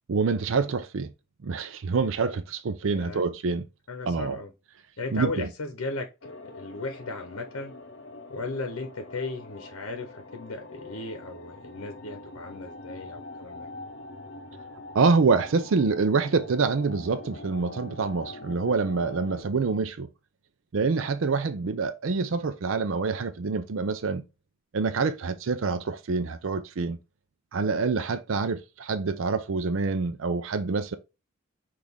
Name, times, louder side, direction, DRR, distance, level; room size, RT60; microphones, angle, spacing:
voice 1, 0.1-1.1 1.4-3.6 4.1-4.4 5.1-5.5 14.9-20.1 20.7-24.2 24.7-27.0 27.5-30.9, right 4 dB, 65° right, 0.4 m, -26 dB
voice 2, 2.9-3.2 3.9-4.5 5.0-7.7 8.3-13.7, left 3 dB, 90° left, 0.8 m, -36 dB
sound 1, 6.2-19.4, left 2 dB, 55° left, 0.7 m, -44 dB
6.1 x 2.5 x 3.5 m
head